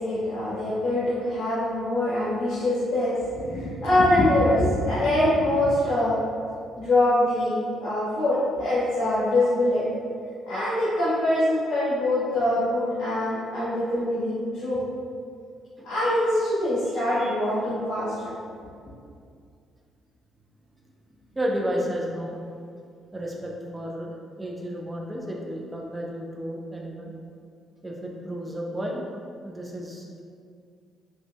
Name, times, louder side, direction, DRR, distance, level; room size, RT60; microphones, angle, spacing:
voice 1, 0.0-6.2 6.7-9.9 10.4-14.8 15.8-18.3, left 1 dB, 55° left, -12 dB, 1.3 m, -24 dB
voice 2, 21.3-22.4 23.1-27.1 27.8-29.0 29.4-30.2, equal, 15° right, -2 dB, 0.8 m, -32 dB
5.1 x 3.2 x 2.2 m, 2.3 s
hypercardioid pair, 50°, 0 cm